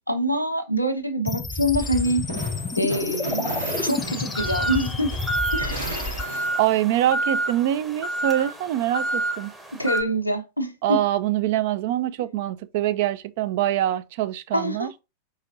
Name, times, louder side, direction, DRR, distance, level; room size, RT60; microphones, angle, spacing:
voice 1, 0.1-2.2 2.8-3.5 3.8-5.2 5.5-5.8 9.8-11.0 14.5-14.9, equal, 90° left, 0.7 m, -25 dB
sound 1, 1.3-6.2, left 4 dB, 15° left, 0.4 m, -30 dB
sound 2, 1.8-7.0, right 2 dB, 85° right, 1.5 m, -35 dB
sound 3, 4.0-10.0, right 2 dB, 10° right, 0.8 m, -29 dB
voice 2, 6.6-9.5 10.8-14.9, right 13 dB, 50° right, 0.4 m, -24 dB
5.1 x 4.0 x 2.5 m
figure-of-eight pair, 90°, 0 cm